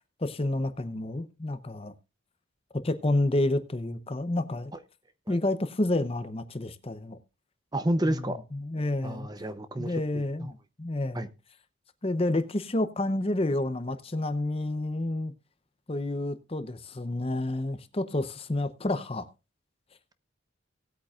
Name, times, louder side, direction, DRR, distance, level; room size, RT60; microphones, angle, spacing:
voice 1, 0.2-1.9 2.7-4.7 5.3-7.2 8.0-9.3 9.8-11.3 12.0-15.3 15.9-19.3, left 1 dB, 25° left, 0.7 m, -29 dB
voice 2, 7.7-8.4 9.0-10.5 11.1-11.3, right 1 dB, 20° right, 0.7 m, -30 dB
18.5 x 8.6 x 2.4 m
head